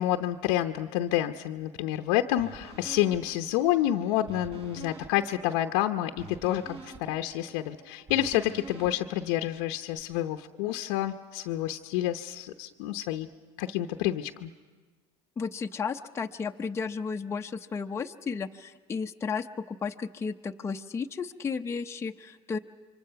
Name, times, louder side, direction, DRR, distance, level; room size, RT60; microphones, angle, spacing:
voice 1, 0.0-13.3 13.6-14.5, left 13 dB, 75° left, 5 dB, 0.8 m, -29 dB
sound 1, 2.4-10.0, right 2 dB, 45° right, 4.2 m, -48 dB
voice 2, 15.4-22.6, left 5 dB, 20° left, 4 dB, 0.7 m, -33 dB
28.5 x 24.5 x 5.8 m, 1.4 s
supercardioid pair, 110°, 14 cm